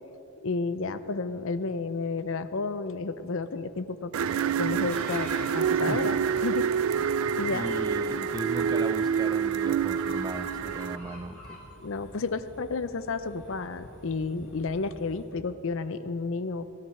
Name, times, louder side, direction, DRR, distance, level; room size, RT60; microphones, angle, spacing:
voice 1, 0.4-4.1 4.6-6.7 7.0-7.8 11.8-16.7, left 4 dB, 65° left, 12 dB, 0.6 m, -32 dB
sound 1, 4.1-11.0, right 7 dB, 75° right, 0.4 m, -27 dB
sound 2, 4.9-15.3, equal, 10° left, 4.2 m, -48 dB
voice 2, 7.5-11.6, right 2 dB, 20° right, 10 dB, 0.5 m, -37 dB
19.0 x 13.5 x 4.3 m, 2.8 s
head